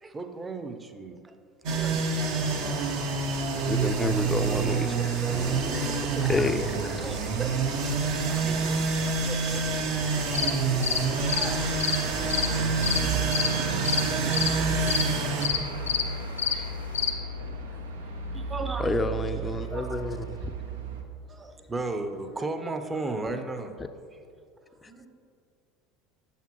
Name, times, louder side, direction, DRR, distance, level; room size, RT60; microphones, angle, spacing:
voice 1, 0.0-1.3 3.5-4.6 5.1-8.0 8.2-9.9 18.3-19.0 21.3-23.7, right 3 dB, 20° right, 7 dB, 0.6 m, -36 dB
sound 1, 1.7-15.5, right 4 dB, 65° right, 0.9 m, -27 dB
voice 2, 1.8-2.9 6.2-6.4 6.7-7.3 10.2-11.7 14.1-14.7 15.2-16.2 16.4-16.7 19.0-19.1 19.4-20.2 24.6-25.1, right 4 dB, 40° right, 3 dB, 1.2 m, -45 dB
Truck / Idling, 3.3-21.0, right 4 dB, 85° right, 0.6 m, -36 dB
voice 3, 3.7-7.1 18.8-20.2 20.4-20.5 24.8-24.9, left 3 dB, 20° left, 10 dB, 0.4 m, -30 dB
sound 2, 10.1-17.1, left 7 dB, 85° left, 0.6 m, -30 dB
8.3 x 6.8 x 3.0 m, 2.4 s
hypercardioid pair, 75°, 0 cm